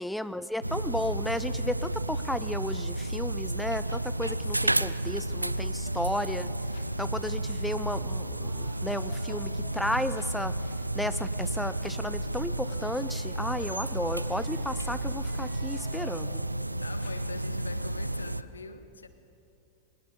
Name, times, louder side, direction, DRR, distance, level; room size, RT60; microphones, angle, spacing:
voice 1, 0.0-6.5 7.0-10.6 10.9-16.4, left 1 dB, 5° left, 14 dB, 0.7 m, -34 dB
sound 1, 0.6-18.4, right 1 dB, 85° right, 0.4 m, -32 dB
voice 2, 3.9-5.2 16.8-19.1, left 4 dB, 75° left, 11 dB, 1.4 m, -44 dB
sound 2, 4.1-17.9, left 3 dB, 55° left, 3.1 m, -50 dB
sound 3, 7.9-16.2, right 3 dB, 20° right, 3.0 m, -54 dB
22.0 x 20.5 x 6.9 m, 2.7 s
figure-of-eight pair, 90°, 0 cm